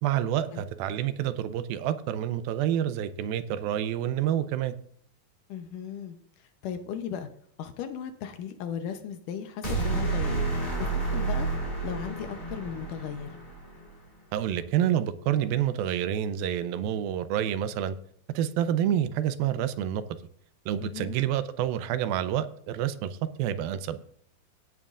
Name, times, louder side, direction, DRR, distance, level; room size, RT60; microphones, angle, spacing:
voice 1, 0.0-4.8 14.3-18.0 18.4-20.0 20.7-24.0, right 10 dB, 85° right, 12 dB, 2.5 m, -28 dB
voice 2, 5.5-6.2 6.6-7.3 7.6-10.5 10.8-11.5 11.8-13.3 20.8-21.1, left 8 dB, 75° left, 7 dB, 2.2 m, -36 dB
sound 1, 9.6-13.9, right 3 dB, 15° left, 3.9 m, -30 dB
17.0 x 9.2 x 2.5 m, 0.63 s
omnidirectional pair, 4.2 m